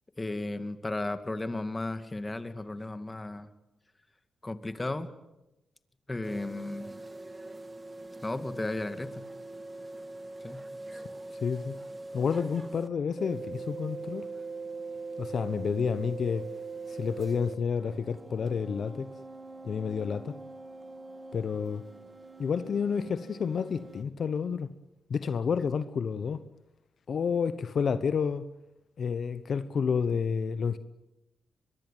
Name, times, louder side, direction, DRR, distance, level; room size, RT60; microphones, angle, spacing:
voice 1, 0.2-3.5 4.4-5.1 6.1-7.0 8.2-9.2 10.4-10.6, left 2 dB, 20° left, 2.3 m, -34 dB
sound 1, 6.2-12.9 13.2-17.5 17.8-24.0, right 3 dB, 25° right, 2.7 m, -42 dB
voice 2, 11.3-11.7 12.1-14.3 15.2-16.5 16.9-19.1 19.6-20.3 21.3-21.8 22.4-24.7 25.1-26.4 27.1-28.4 29.0-30.8, left 6 dB, 60° left, 1.0 m, -30 dB
24.5 x 21.5 x 9.2 m
cardioid pair, 75°, 0 cm